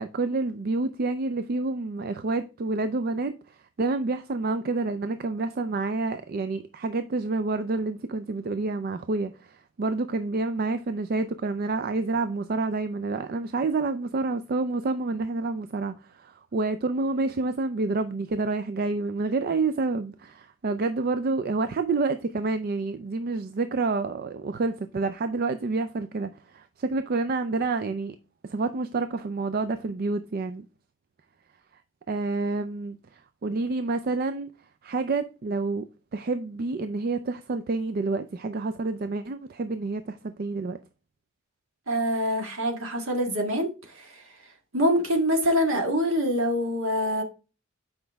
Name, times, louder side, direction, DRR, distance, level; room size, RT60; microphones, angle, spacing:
voice 1, 0.0-28.2 28.4-30.6 32.1-34.5 34.8-40.8, right 3 dB, 45° right, 0.4 m, -28 dB
voice 2, 41.9-44.2 44.7-47.2, equal, 70° right, 1.7 m, -25 dB
7.9 x 5.2 x 3.5 m
head